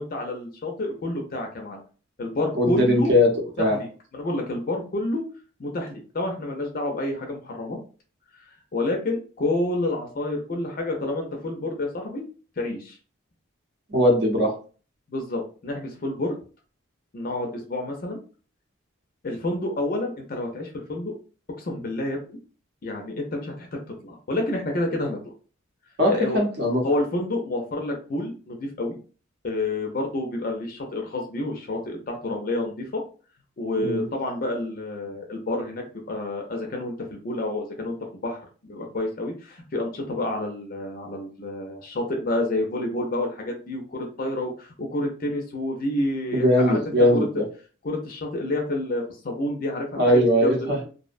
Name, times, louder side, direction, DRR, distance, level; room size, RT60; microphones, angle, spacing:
voice 1, 0.0-1.8 2.2-3.1 3.6-5.2 5.6-7.8 8.3-8.4 8.7-12.2 12.6-13.0 15.1-16.3 17.1-18.2 19.2-21.1 21.6-22.4 22.8-25.2 26.1-26.4 26.8-29.0 29.4-33.0 33.6-38.0 38.2-46.8 47.1-47.3 47.8-50.6, left 1 dB, 45° left, 2 dB, 0.4 m, -29 dB
voice 2, 2.5-3.3 3.6-3.8 13.9-14.5 26.0-26.8 33.8-34.0 46.3-47.4 50.0-50.8, left 1 dB, 55° right, 0 dB, 0.7 m, -20 dB
2.5 x 2.0 x 2.4 m, 0.38 s
head